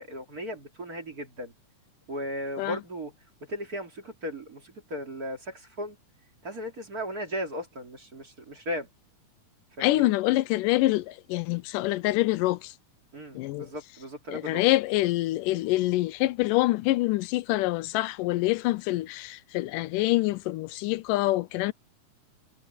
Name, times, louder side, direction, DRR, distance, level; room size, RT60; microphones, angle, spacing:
voice 1, 0.0-1.5 2.1-3.1 3.4-6.0 6.4-8.9 9.8-10.1 13.1-14.6, equal, 30° right, 2.9 m, -36 dB
voice 2, 9.8-12.7 13.4-13.7 14.3-21.7, left 18 dB, 85° left, 2.2 m, -26 dB
omnidirectional pair, 3.7 m